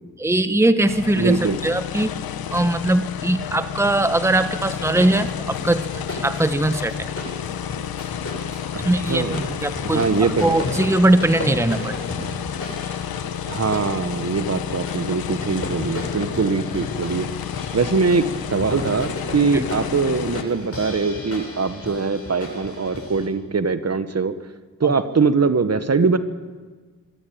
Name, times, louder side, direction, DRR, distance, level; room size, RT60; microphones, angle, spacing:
voice 1, 0.2-2.1 2.5-7.1 8.8-12.0 19.5-19.7 24.8-25.0, right 1 dB, 5° right, 10 dB, 1.2 m, -21 dB
sound 1, 0.8-20.4, left 9 dB, 80° left, 1.1 m, -31 dB
voice 2, 1.2-1.6 8.7-9.4 9.8-10.6 13.5-17.3 17.7-24.3 24.8-26.2, right 4 dB, 45° right, 11 dB, 1.5 m, -22 dB
sound 2, 4.7-23.3, left 2 dB, 40° left, 7.8 m, -34 dB
23.5 x 13.0 x 8.8 m, 1.4 s
supercardioid pair, 50°, 36 cm